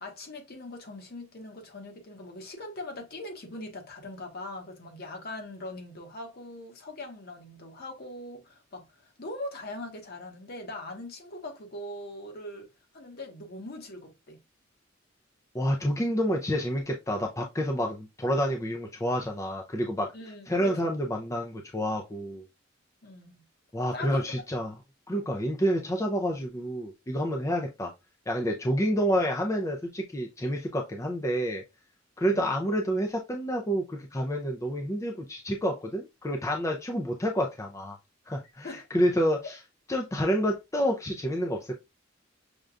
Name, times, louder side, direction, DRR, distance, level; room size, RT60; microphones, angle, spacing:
voice 1, 0.0-12.7 12.9-14.4 20.1-21.0 23.0-23.4 23.9-24.3 38.6-38.9, left 1 dB, 50° left, 1.0 m, -41 dB
voice 2, 15.5-20.1 20.5-22.4 23.7-24.7 25.1-27.9 28.3-31.6 32.2-38.0 38.3-39.6 39.9-41.8, equal, 15° left, 0.4 m, -28 dB
6.3 x 2.3 x 2.4 m
head